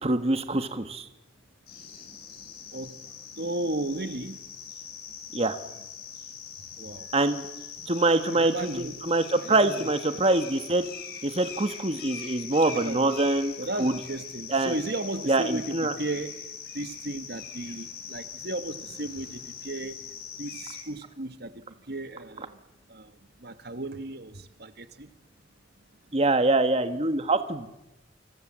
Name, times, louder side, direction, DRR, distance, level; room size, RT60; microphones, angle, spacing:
voice 1, 0.0-1.1 5.3-5.6 7.1-7.4 7.9-10.9 11.2-13.5 13.8-13.9 14.5-14.7 15.3-15.9 26.1-27.7, right 2 dB, 35° right, 1.5 m, -24 dB
sound 1, 1.7-20.8, left 7 dB, 55° left, 7.7 m, -42 dB
voice 2, 3.4-4.4 6.8-7.1 8.3-9.0 9.4-9.9 12.7-13.2 13.6-16.4 16.7-20.0 20.4-21.5 21.9-22.6 22.9-23.1 23.4-25.1, right 2 dB, 60° right, 1.6 m, -35 dB
29.0 x 25.5 x 7.6 m
head